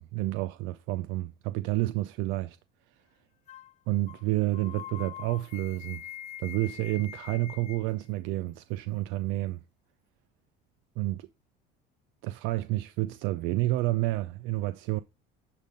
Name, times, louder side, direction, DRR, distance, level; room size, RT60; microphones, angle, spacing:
voice 1, 0.0-2.6 2.9-3.0 3.9-6.1 6.4-9.6 11.0-11.3 12.2-15.0, right 17 dB, 75° right, 0.5 m, -30 dB
sound 1, 3.5-3.7 4.1-4.2 4.5-7.9, left 11 dB, 35° left, 0.4 m, -43 dB
10.5 x 3.8 x 5.1 m
cardioid pair, 135°, 20 cm